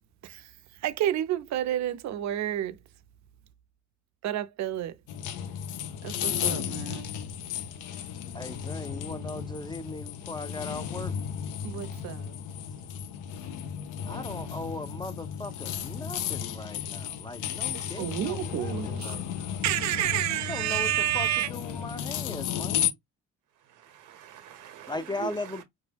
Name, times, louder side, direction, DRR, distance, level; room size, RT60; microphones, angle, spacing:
voice 1, 0.8-2.8 4.2-5.0 6.0-7.1 11.6-12.3 17.7-19.3 19.6-21.5, right 12 dB, 65° right, 0.5 m, -30 dB
sound 1, 5.1-22.9, left 9 dB, 85° left, 0.5 m, -34 dB
voice 2, 8.3-11.1 14.1-19.5 20.5-22.9 24.9-25.6, left 2 dB, 15° left, 0.3 m, -38 dB
voice 3, 23.6-25.6, right 11 dB, 90° right, 0.9 m, -43 dB
2.2 x 2.0 x 3.3 m
cardioid pair, 90°, 30 cm